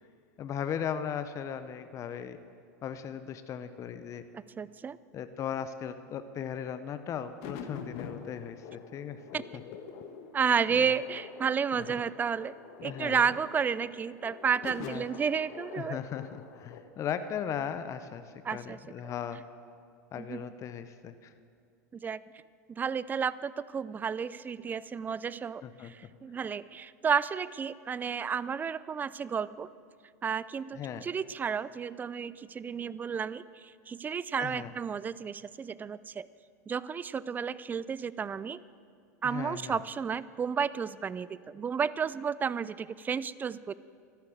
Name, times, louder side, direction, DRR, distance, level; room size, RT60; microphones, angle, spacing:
voice 1, 0.4-2.4 2.8-4.2 5.1-9.6 10.7-10.9 11.7-12.0 12.8-13.2 14.8-15.0 15.7-19.4 20.1-21.3 25.6-25.9 30.7-31.1 34.4-34.7 39.2-39.8, left 8 dB, 35° left, 10 dB, 0.8 m, -37 dB
voice 2, 4.3-5.0 9.3-9.4 10.3-12.5 12.8-16.0 18.4-18.8 19.0-19.1 20.2-20.4 21.9-22.2 22.7-29.7 30.2-36.3 36.7-38.6 39.2-43.7, right 6 dB, 20° right, 18 dB, 0.4 m, -32 dB
sound 1, 7.4-16.8, left 7 dB, 60° left, 1.4 m, -46 dB
12.5 x 12.0 x 7.7 m, 2.3 s
hypercardioid pair, 100°, 9 cm